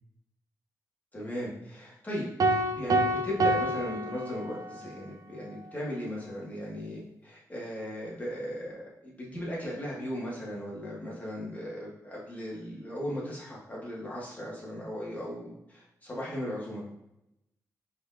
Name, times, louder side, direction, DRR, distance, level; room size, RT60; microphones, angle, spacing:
voice 1, 1.1-16.8, equal, 25° left, -5 dB, 1.8 m, -37 dB
sound 1, 2.4-4.9, right 1 dB, 60° right, 0.5 m, -27 dB
4.9 x 4.1 x 2.6 m, 0.86 s
cardioid pair, 90°, 7 cm